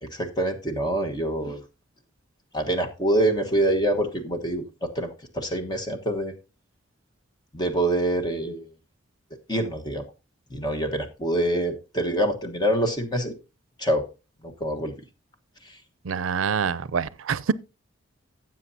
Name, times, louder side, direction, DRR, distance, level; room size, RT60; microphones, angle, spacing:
voice 1, 0.0-1.6 2.5-6.3 7.5-8.6 9.5-10.0 10.5-13.3 13.8-14.1 14.4-15.0 15.6-15.8, right 1 dB, 20° left, 1.3 m, -26 dB
voice 2, 16.0-17.5, right 6 dB, 80° right, 0.5 m, -26 dB
16.0 x 7.4 x 2.7 m
head